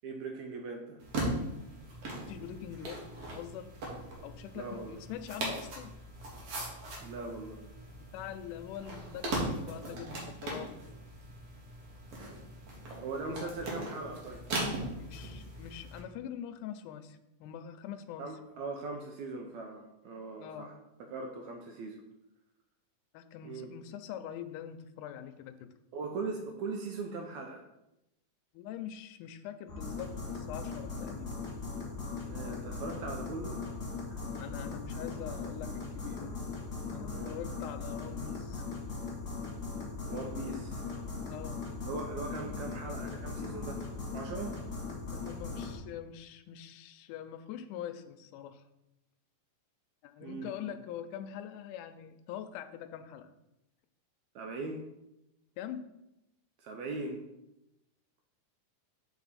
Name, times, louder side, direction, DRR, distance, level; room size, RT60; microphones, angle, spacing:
voice 1, 0.0-1.0 4.6-5.0 7.0-7.6 13.0-14.4 18.2-20.8 21.1-22.0 23.4-23.7 25.9-27.6 32.2-33.6 34.1-34.2 37.1-37.4 40.1-40.8 41.8-43.8 44.1-44.6 50.2-50.7 54.4-54.9 56.6-57.2, right 3 dB, 75° right, 2 dB, 1.8 m, -40 dB
sound 1, 1.0-16.0, right 1 dB, 55° right, 2.3 m, -39 dB
voice 2, 2.3-3.0 3.3-3.7 4.2-5.9 8.1-10.7 13.3-13.5 15.0-18.3 20.4-20.7 23.1-25.7 28.5-31.3 34.4-36.3 36.9-38.7 41.3-41.6 45.1-48.6 50.0-53.3 55.6-55.9, left 10 dB, 85° left, 8 dB, 2.1 m, -43 dB
sound 2, 29.7-45.8, left 4 dB, 35° left, 2.0 m, -39 dB
6.9 x 4.8 x 4.1 m, 0.90 s
omnidirectional pair, 3.6 m